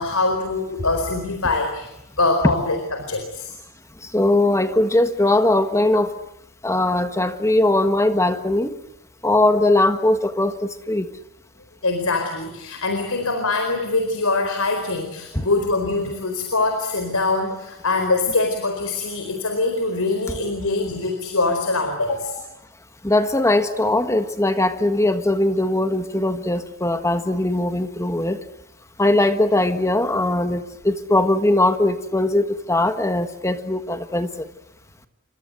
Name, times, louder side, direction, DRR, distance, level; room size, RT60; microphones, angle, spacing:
voice 1, 0.0-1.9 2.2-3.5 11.8-22.4, left 3 dB, 85° left, 5 dB, 4.5 m, -23 dB
voice 2, 4.1-6.1 6.6-8.7 9.2-11.1 15.3-15.5 23.0-28.4 29.0-34.3, left 1 dB, 15° left, 9 dB, 1.4 m, -20 dB
29.5 x 25.0 x 7.8 m, 0.88 s
head